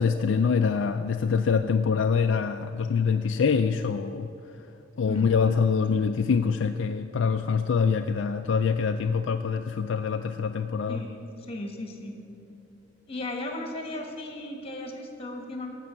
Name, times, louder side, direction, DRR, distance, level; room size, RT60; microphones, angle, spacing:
voice 1, 0.0-4.3 5.0-11.0, left 5 dB, 75° left, 7 dB, 0.4 m, -25 dB
voice 2, 10.9-12.2 13.1-15.7, left 1 dB, 30° left, 3 dB, 1.5 m, -36 dB
15.0 x 5.4 x 7.1 m, 2.9 s
head